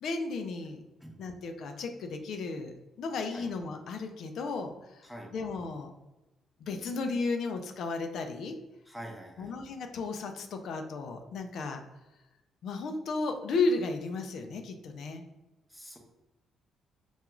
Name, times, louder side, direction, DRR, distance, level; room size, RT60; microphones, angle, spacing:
voice 1, 0.0-0.8 1.2-5.9 6.6-8.6 9.4-11.8 12.6-15.2, left 3 dB, 70° left, 6 dB, 0.3 m, -34 dB
voice 2, 8.9-9.5 15.7-16.0, equal, ahead, 0 dB, 0.7 m, -45 dB
2.3 x 2.3 x 3.0 m, 1.0 s
cardioid pair, 90°, 0 cm